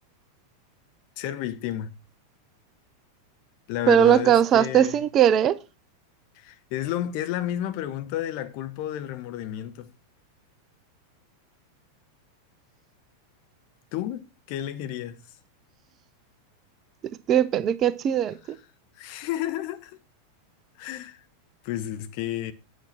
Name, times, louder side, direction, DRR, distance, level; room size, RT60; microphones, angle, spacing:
voice 1, 1.2-1.9 3.7-5.0 6.3-9.9 13.9-15.3 18.4-18.6 19.0-20.0 20.8-21.2 21.6-22.5, left 12 dB, 45° left, 1.0 m, -31 dB
voice 2, 3.9-5.6 17.3-18.4, right 9 dB, 30° right, 0.6 m, -19 dB
8.5 x 8.2 x 4.3 m
figure-of-eight pair, 90°, 0 cm